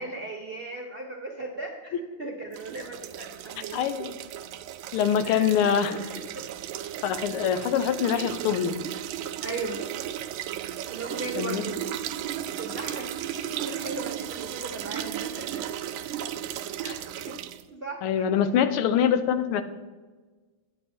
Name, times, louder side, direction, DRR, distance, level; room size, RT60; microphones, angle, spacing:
voice 1, 0.0-4.1 5.2-5.7 6.0-6.4 9.4-9.8 10.9-12.1 12.5-15.6 17.2-17.3 17.7-18.3, right 3 dB, 50° right, 1 dB, 0.7 m, -37 dB
sound 1, 2.5-17.6, right 11 dB, 75° right, 1.3 m, -35 dB
voice 2, 3.7-4.1 4.9-6.0 7.0-8.8 11.4-11.6 16.8-17.0 18.0-19.6, left 8 dB, 85° left, 11 dB, 1.6 m, -24 dB
9.5 x 8.2 x 4.3 m, 1.3 s
omnidirectional pair, 2.4 m